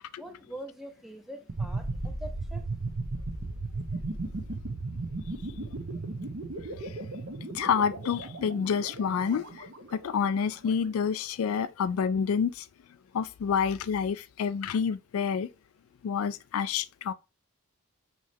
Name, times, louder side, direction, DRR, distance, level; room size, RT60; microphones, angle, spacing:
voice 1, 0.2-2.7, right 1 dB, ahead, 0.6 m, -43 dB
sound 1, 1.5-10.4, right 2 dB, 60° right, 0.8 m, -36 dB
voice 2, 7.5-12.7 13.1-15.5 16.0-17.1, left 6 dB, 80° left, 0.3 m, -28 dB
5.6 x 3.2 x 2.7 m
head